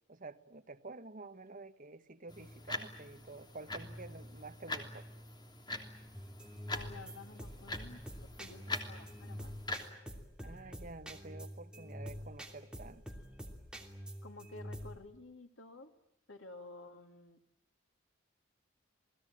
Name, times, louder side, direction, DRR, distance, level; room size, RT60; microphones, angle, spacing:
voice 1, 0.1-5.0 10.4-13.0, right 3 dB, 45° right, 1.3 m, -50 dB
sound 1, 2.3-9.9, left 2 dB, 20° left, 3.2 m, -44 dB
sound 2, 6.1-15.0, equal, 5° right, 3.0 m, -47 dB
voice 2, 6.7-9.6 14.2-15.9 16.3-17.4, left 2 dB, 80° left, 2.9 m, -52 dB
29.0 x 20.0 x 8.9 m
head